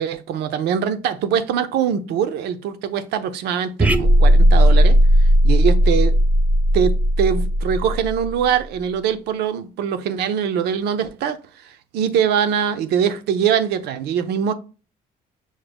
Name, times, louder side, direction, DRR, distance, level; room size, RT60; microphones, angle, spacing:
voice 1, 0.0-5.0 5.4-6.2 6.7-14.5, right 8 dB, 80° right, 0.6 m, -22 dB
sound 1, 3.8-8.4, equal, 10° right, 0.4 m, -15 dB
6.3 x 2.1 x 3.4 m
cardioid pair, 110°, 17 cm